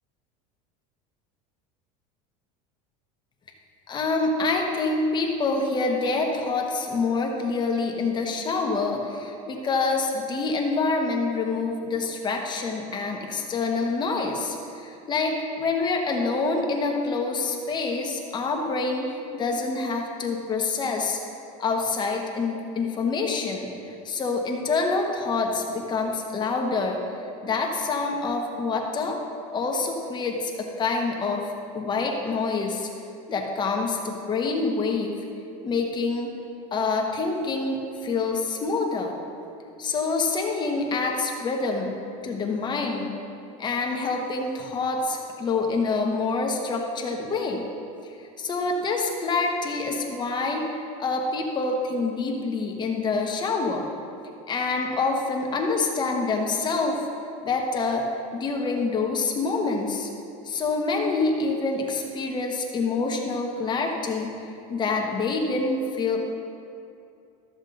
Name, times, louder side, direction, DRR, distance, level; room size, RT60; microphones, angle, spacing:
voice 1, 3.9-21.2 21.6-23.7 24.0-27.0 27.4-29.2 29.5-32.9 33.3-35.2 35.6-36.3 36.7-39.2 39.8-42.0 42.2-43.1 43.6-47.7 48.0-50.7 51.0-53.9 54.5-57.0 57.4-58.0 58.3-60.1 60.4-66.2, left 3 dB, 25° left, 1 dB, 1.1 m, -26 dB
13.0 x 7.1 x 4.0 m, 2.6 s
supercardioid pair, 145°, 18 cm